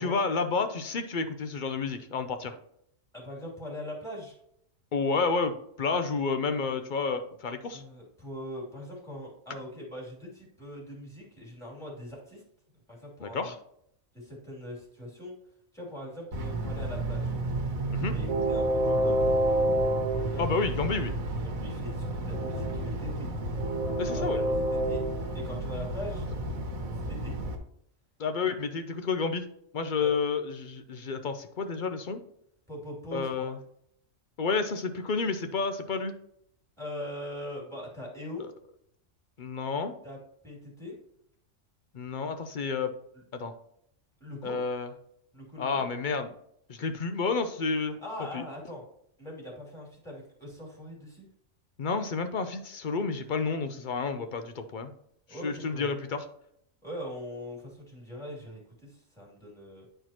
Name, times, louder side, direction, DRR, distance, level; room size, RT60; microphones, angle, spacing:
voice 1, 0.0-2.5 4.9-7.8 13.2-13.6 17.9-18.1 20.4-21.1 24.0-24.4 28.2-29.4 29.7-32.2 33.1-33.6 34.4-36.1 38.4-38.5 39.4-40.0 41.9-42.9 43.3-43.5 44.4-44.9 45.6-46.3 46.7-47.9 48.3-48.4 51.8-54.9 55.4-56.2, left 4 dB, 50° left, 8 dB, 0.6 m, -30 dB
voice 2, 3.1-4.4 7.7-12.4 12.9-13.5 14.1-15.3 15.7-17.3 18.0-19.3 20.3-20.9 21.4-23.3 24.0-26.3 27.0-27.3 30.0-30.1 32.7-33.5 36.8-38.5 40.0-40.2 40.4-41.0 43.1-43.2 44.2-44.6 45.3-45.8 48.0-48.8 49.2-51.3 55.3-55.9 56.8-59.8, left 1 dB, ahead, -3 dB, 2.8 m, -41 dB
Train, 16.3-27.6, right 1 dB, 90° right, 1.5 m, -29 dB
10.0 x 4.5 x 2.9 m, 0.71 s
omnidirectional pair, 1.4 m